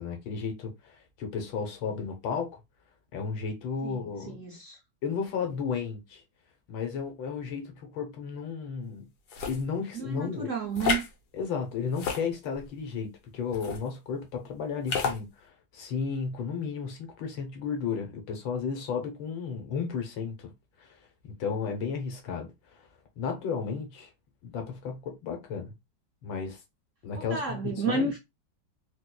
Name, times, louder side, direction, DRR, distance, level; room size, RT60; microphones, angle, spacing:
voice 1, 0.0-2.6 3.1-4.4 5.0-6.2 6.7-9.1 9.4-10.5 11.3-20.5 20.8-21.0 21.4-22.8 23.2-24.1 24.4-25.7 26.2-26.6 27.0-28.1, left 6 dB, 85° left, 1.7 m, -33 dB
voice 2, 3.8-4.8 9.9-11.0 27.1-28.2, right 4 dB, 70° right, 0.7 m, -31 dB
sound 1, 9.3-9.6 10.8-11.1 11.9-12.7 13.5-13.8 14.9-15.2, left 5 dB, 65° left, 1.2 m, -30 dB
4.0 x 2.5 x 2.2 m
omnidirectional pair, 2.0 m